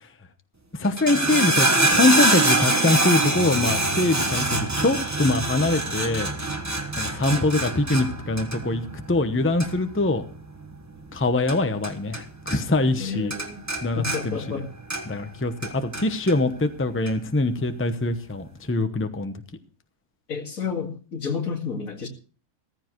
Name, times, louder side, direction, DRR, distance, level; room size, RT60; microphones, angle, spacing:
voice 1, 0.8-6.3 7.0-10.2 11.1-13.3 13.8-14.6 15.1-19.3, left 2 dB, 10° left, 8 dB, 0.8 m, -23 dB
sound 1, 0.8-12.2 12.5-13.0 13.3-15.3 15.6-16.4 17.1-17.2, right 2 dB, 15° right, 1.1 m, -25 dB
voice 2, 4.5-4.8 7.3-7.5 13.0-13.6 14.0-14.7 20.3-22.1, left 5 dB, 80° left, 2 dB, 2.5 m, -31 dB
15.5 x 14.5 x 3.1 m, 0.38 s
omnidirectional pair, 1.4 m